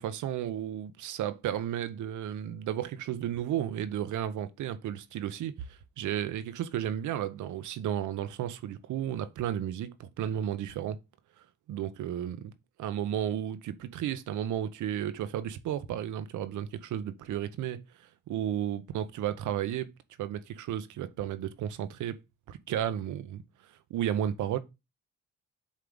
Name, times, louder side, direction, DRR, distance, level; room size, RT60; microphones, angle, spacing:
voice 1, 0.0-11.0 11.7-12.5 12.8-17.8 18.3-19.9 20.2-22.2 22.5-23.4 23.9-24.6, right 10 dB, 75° right, 0.8 m, -33 dB
8.3 x 3.3 x 3.8 m
cardioid pair, 90°, 30 cm